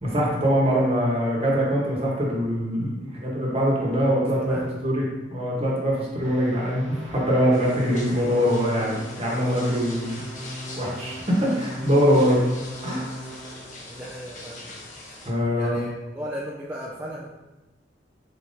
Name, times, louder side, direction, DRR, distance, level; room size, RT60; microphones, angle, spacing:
voice 1, 0.0-4.6 4.8-5.0 5.3-10.2 10.8-12.4 12.8-13.1 15.2-15.8, equal, 30° right, -4 dB, 1.0 m, -23 dB
voice 2, 4.4-4.7 6.0-6.2 12.3-12.6 13.9-14.7 15.6-15.9 16.1-17.3, equal, 10° right, -5 dB, 0.3 m, -36 dB
sound 1, 6.2-13.8, equal, 80° left, 1.3 m, -38 dB
sound 2, 7.5-15.3, left 2 dB, 40° left, 0.7 m, -43 dB
4.4 x 3.6 x 2.6 m, 1.1 s
head